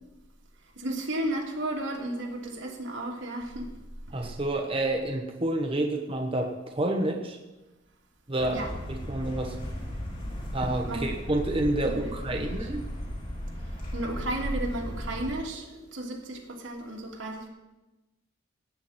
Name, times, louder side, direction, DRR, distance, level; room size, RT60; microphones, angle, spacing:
voice 1, 0.8-3.6 8.5-8.7 10.9-11.1 11.8-12.6 13.6-17.5, right 1 dB, 85° right, -1 dB, 2.8 m, -34 dB
voice 2, 4.1-7.4 8.3-9.6 10.5-12.8, right 1 dB, 30° right, 2 dB, 1.1 m, -29 dB
sound 1, 8.4-15.4, equal, 45° left, 4.0 m, -35 dB
17.5 x 9.3 x 4.4 m, 1.1 s
head